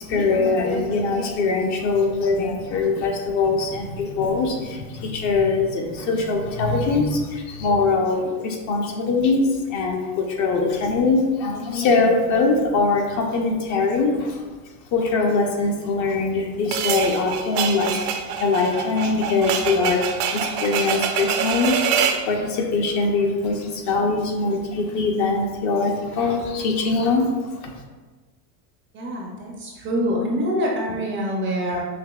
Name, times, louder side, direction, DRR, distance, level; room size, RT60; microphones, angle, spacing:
voice 1, 0.0-14.4 14.9-27.3 27.6-27.7, left 3 dB, 40° left, 2 dB, 0.5 m, -22 dB
sound 1, 16.7-22.3, right 7 dB, 70° right, 0.6 m, -25 dB
voice 2, 28.9-31.8, equal, 25° right, -1 dB, 0.4 m, -25 dB
5.8 x 2.6 x 2.3 m, 1.3 s
supercardioid pair, 135°, 47 cm